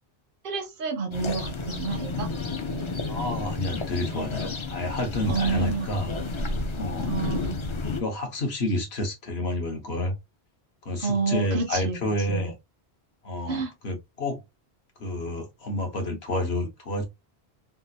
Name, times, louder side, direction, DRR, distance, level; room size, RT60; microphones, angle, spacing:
voice 1, 0.4-2.3 5.3-5.9 7.1-7.6 11.0-12.0 12.3-12.5 13.5-13.7, right 5 dB, 60° right, 0.8 m, -29 dB
sound 1, 1.1-8.0, left 3 dB, 40° left, 0.5 m, -31 dB
voice 2, 3.1-6.1 6.8-7.2 7.8-10.1 10.8-12.5 13.2-14.4 15.0-17.0, left 1 dB, 75° left, 1.4 m, -29 dB
3.5 x 2.4 x 2.8 m
omnidirectional pair, 1.1 m